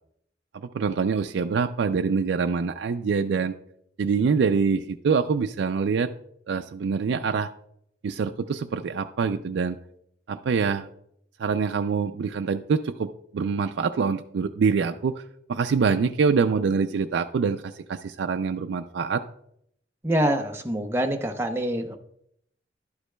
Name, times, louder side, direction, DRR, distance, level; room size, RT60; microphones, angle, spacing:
voice 1, 0.5-3.6 4.0-6.1 6.5-7.5 8.0-9.8 10.3-10.9 11.4-15.2 15.5-19.2, right 5 dB, 80° right, 6 dB, 0.4 m, -25 dB
voice 2, 20.0-22.0, right 1 dB, 15° right, 4 dB, 0.7 m, -25 dB
11.5 x 8.0 x 2.2 m, 0.71 s
head